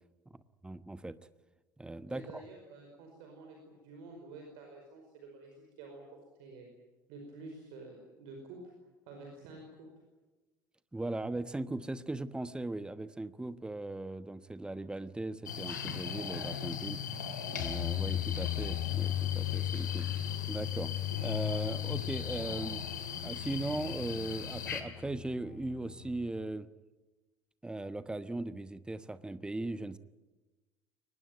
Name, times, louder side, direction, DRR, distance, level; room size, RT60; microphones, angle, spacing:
voice 1, 0.3-1.2 1.8-2.4 10.9-17.0 17.5-20.1 20.5-20.9 21.2-22.8 23.2-26.7 27.6-30.0, right 2 dB, 10° right, 14 dB, 1.1 m, -38 dB
voice 2, 2.1-6.7 7.1-8.6 9.1-9.9, right 3 dB, 55° right, 2 dB, 5.0 m, -50 dB
sound 1, 15.5-24.8, left 7 dB, 75° left, 2.2 m, -39 dB
sound 2, 17.6-26.4, left 14 dB, 50° left, 0.8 m, -37 dB
23.5 x 20.0 x 9.2 m, 1.2 s
figure-of-eight pair, 65°, 10 cm